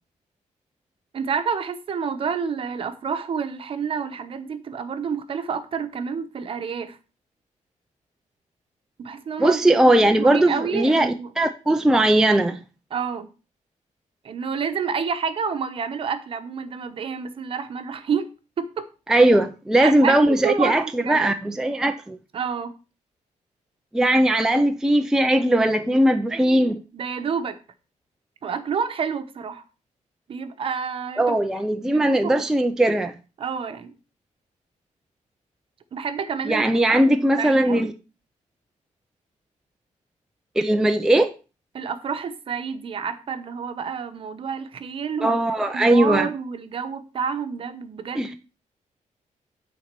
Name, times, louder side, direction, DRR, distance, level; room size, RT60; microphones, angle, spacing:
voice 1, 1.1-7.0 9.0-11.3 12.9-13.3 14.2-18.3 18.6-18.9 19.8-21.2 22.3-22.7 26.9-27.6 28.4-29.6 30.3-31.4 31.9-32.5 33.4-33.9 35.9-37.9 41.7-45.4 45.7-48.4, right 6 dB, 45° right, 1.0 m, -29 dB
voice 2, 9.4-12.6 19.1-22.2 23.9-26.8 31.2-33.1 36.5-37.9 40.6-41.3 45.2-46.3 48.1-48.3, right 1 dB, 5° right, 0.4 m, -19 dB
9.1 x 4.1 x 6.7 m
wide cardioid pair, 180°, 13 cm